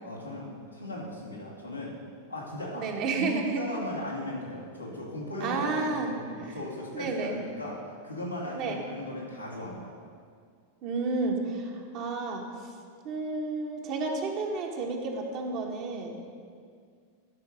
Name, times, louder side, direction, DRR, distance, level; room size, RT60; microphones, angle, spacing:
voice 1, 0.0-2.0 2.3-2.9 3.1-7.8 8.0-9.9, left 1 dB, 85° left, -5 dB, 2.3 m, -37 dB
voice 2, 2.7-3.6 5.4-6.2 6.4-6.6 6.9-7.4 8.5-8.8 10.8-12.4 13.0-16.2, right 3 dB, 40° right, 0 dB, 1.4 m, -31 dB
12.5 x 5.8 x 6.4 m, 2.1 s
figure-of-eight pair, 90°, 0 cm